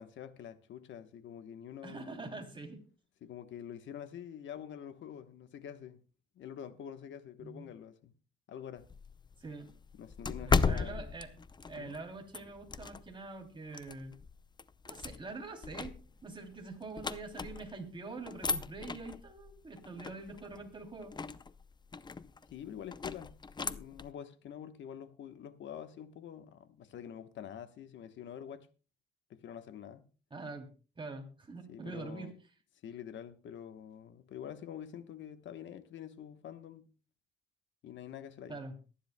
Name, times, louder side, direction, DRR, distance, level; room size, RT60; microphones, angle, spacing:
voice 1, 0.0-2.1 3.2-6.0 6.4-8.1 8.5-8.9 9.9-11.0 11.8-12.0 22.5-23.3 23.6-28.7 29.3-30.0 31.7-32.3 32.8-36.9 37.8-38.6, left 9 dB, 70° left, 1.1 m, -46 dB
voice 2, 1.8-2.8 7.4-7.7 9.4-9.7 10.4-11.3 11.7-14.1 14.9-21.1 30.3-30.7 31.0-32.3 38.5-38.7, right 3 dB, 25° right, 2.9 m, -45 dB
sound 1, 8.8-13.2 13.7-17.9 18.2-24.1, left 4 dB, 20° left, 0.5 m, -37 dB
22.5 x 10.0 x 2.2 m
cardioid pair, 90°, 20 cm